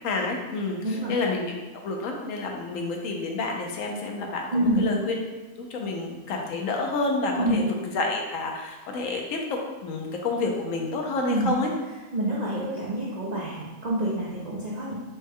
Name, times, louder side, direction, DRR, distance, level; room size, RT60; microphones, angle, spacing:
voice 1, 0.0-1.5 1.8-5.2 5.6-7.6 7.9-11.7, left 3 dB, 65° left, 1 dB, 1.0 m, -29 dB
voice 2, 4.5-4.8 7.4-7.6 11.3-11.5 12.1-15.0, right 1 dB, 45° right, -6 dB, 0.5 m, -27 dB
6.2 x 3.3 x 2.2 m, 1.2 s
omnidirectional pair, 1.5 m